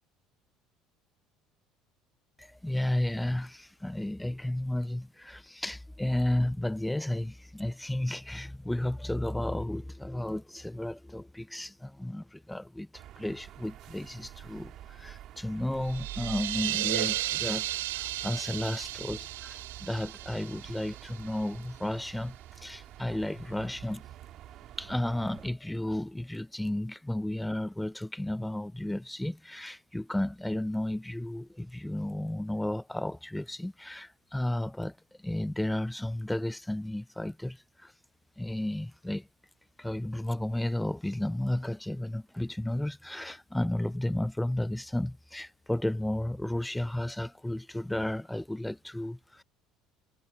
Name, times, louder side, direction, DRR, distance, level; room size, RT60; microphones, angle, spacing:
voice 1, 2.4-24.0 24.8-37.9 38.4-39.3 39.8-49.4, left 1 dB, 5° left, 0.6 m, -33 dB
sound 1, 12.9-25.5, right 13 dB, 55° right, 4.7 m, -48 dB
sound 2, 15.8-21.5, right 16 dB, 80° right, 0.8 m, -34 dB
hypercardioid pair, 65°, 0 cm